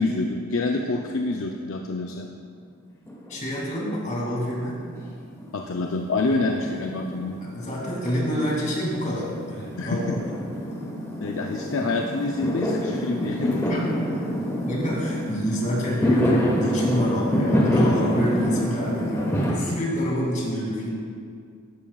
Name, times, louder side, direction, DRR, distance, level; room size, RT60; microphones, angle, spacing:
voice 1, 0.0-2.3 5.5-7.4 9.8-10.2 11.2-13.6, left 3 dB, 60° left, 2 dB, 0.5 m, -27 dB
Fireworks, 3.1-4.0 4.3-19.5, equal, 15° left, 1.4 m, -27 dB
voice 2, 3.3-4.8 7.5-10.0 13.7-13.8 14.7-20.9, equal, 35° left, -4 dB, 2.5 m, -27 dB
14.5 x 11.0 x 2.4 m, 2.3 s
head